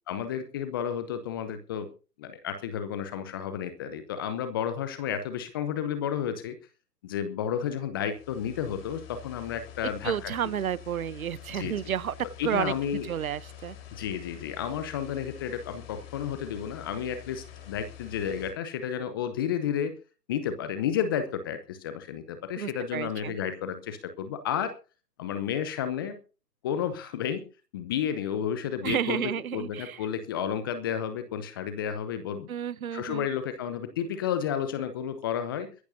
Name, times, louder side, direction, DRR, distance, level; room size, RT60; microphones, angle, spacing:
voice 1, 0.1-1.9 2.2-6.6 7.0-10.3 11.5-11.9 12.4-13.1 13.9-19.9 20.3-24.7 25.2-26.2 26.6-27.4 27.7-32.5 32.9-35.7, left 8 dB, 15° left, 0.7 m, -32 dB
sound 1, 8.1-18.5, left 10 dB, 35° left, 4.3 m, -47 dB
voice 2, 10.0-12.1 12.4-12.7 13.0-13.8 22.6-23.3 28.8-30.0 32.5-33.2, right 9 dB, 55° right, 0.9 m, -31 dB
22.0 x 14.5 x 2.7 m
figure-of-eight pair, 135°, 49 cm